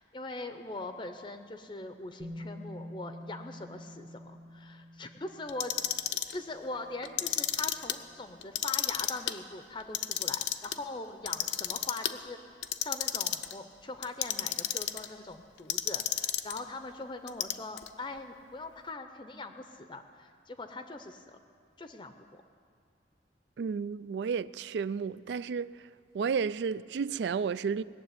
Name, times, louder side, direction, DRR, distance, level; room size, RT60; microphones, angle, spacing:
voice 1, 0.0-6.0 6.3-12.4 12.8-21.4 21.8-22.4, left 2 dB, 25° left, 0.6 m, -42 dB
Bass guitar, 2.2-8.3, left 1 dB, 35° right, 1.0 m, -48 dB
Clock, 5.5-6.3 7.0-7.9 8.4-9.3 9.8-10.7 11.3-12.1 12.6-13.5 14.0-15.1 15.7-16.6 17.3-17.9, left 12 dB, 75° left, 0.6 m, -31 dB
voice 2, 23.6-25.9 26.1-27.8, right 6 dB, 70° right, 0.3 m, -32 dB
19.0 x 7.4 x 9.5 m
head